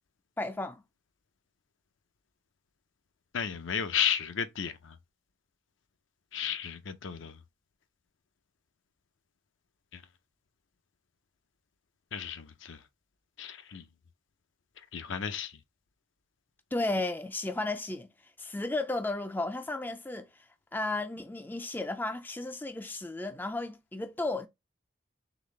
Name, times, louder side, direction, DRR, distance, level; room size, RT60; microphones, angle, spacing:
voice 1, 0.4-0.8 16.7-18.1 18.4-20.3 20.7-24.5, left 2 dB, 10° left, 0.3 m, -33 dB
voice 2, 3.3-4.9 6.3-7.4 12.1-12.8 13.4-13.8 14.9-15.5, left 8 dB, 70° left, 0.6 m, -33 dB
4.0 x 3.4 x 3.1 m
head